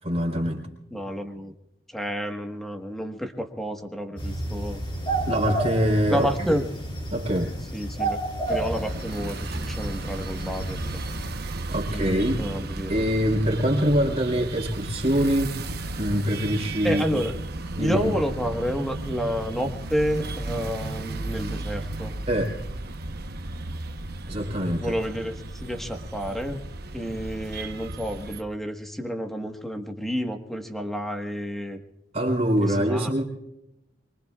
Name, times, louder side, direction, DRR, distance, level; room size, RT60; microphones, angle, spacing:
voice 1, 0.0-0.6 5.3-6.6 7.1-7.5 11.4-12.4 12.9-15.6 16.0-17.2 17.8-18.2 22.3-22.6 24.3-24.9 32.1-33.2, equal, 35° right, 4.0 m, -24 dB
voice 2, 0.9-1.5 1.9-4.8 6.1-6.7 7.7-8.2 8.5-10.8 11.9-13.0 16.8-17.4 17.8-22.1 24.8-26.6 26.9-31.8 32.7-33.1, equal, ahead, 1.4 m, -30 dB
sound 1, 4.2-11.3, right 2 dB, 30° left, 6.8 m, -31 dB
sound 2, 8.5-28.4, right 2 dB, 60° right, 1.0 m, -34 dB
25.0 x 24.0 x 2.4 m
head